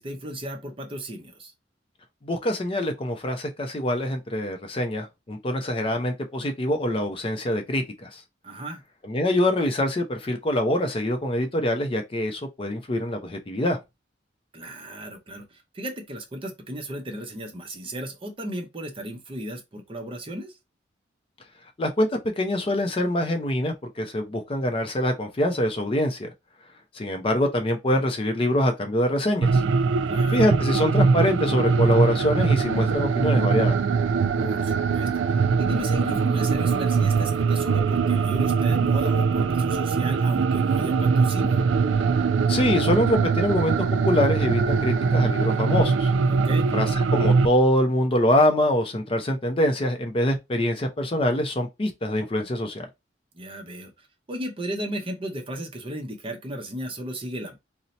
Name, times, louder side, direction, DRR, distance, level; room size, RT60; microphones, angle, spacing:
voice 1, 0.0-1.5 8.4-8.8 14.5-20.5 30.1-30.4 34.4-41.6 46.3-46.7 53.3-53.9 54.3-57.6, equal, 30° right, 0.6 m, -35 dB
voice 2, 2.2-8.2 9.1-13.8 21.8-22.1 22.4-26.3 27.0-29.6 30.3-33.8 42.5-43.8 44.0-46.1 46.7-52.9, left 1 dB, 30° left, 0.5 m, -24 dB
sound 1, 29.4-47.5, right 5 dB, 80° right, 0.3 m, -22 dB
2.7 x 2.0 x 3.9 m
head